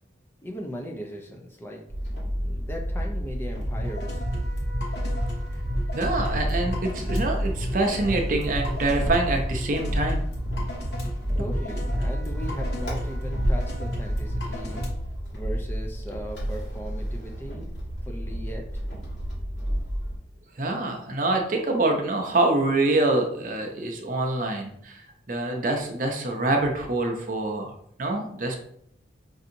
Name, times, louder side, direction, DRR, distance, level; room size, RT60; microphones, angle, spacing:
voice 1, 0.4-1.8 2.4-4.2 11.4-14.8 15.3-17.7 18.1-18.7, equal, 10° left, 0 dB, 0.4 m, -38 dB
sound 1, 1.9-20.2, equal, 90° left, 1.6 m, -30 dB
sound 2, 3.5-14.9, equal, 60° left, 1.0 m, -33 dB
voice 2, 5.9-10.2 20.6-27.7 28.0-28.6, right 2 dB, 45° right, 2 dB, 0.6 m, -25 dB
5.3 x 2.7 x 2.6 m, 0.70 s
head